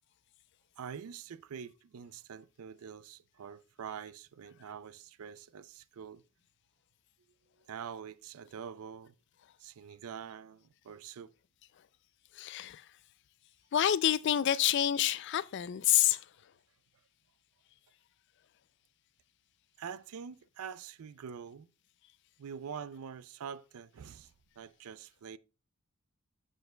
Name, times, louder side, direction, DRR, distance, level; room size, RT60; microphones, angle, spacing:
voice 1, 0.8-6.2 7.7-9.1 9.6-11.3 19.8-21.7 22.4-25.4, right 7 dB, 80° right, 0.4 m, -45 dB
voice 2, 12.4-12.8 13.7-16.2, left 11 dB, 50° left, 0.3 m, -28 dB
15.0 x 5.1 x 2.2 m
head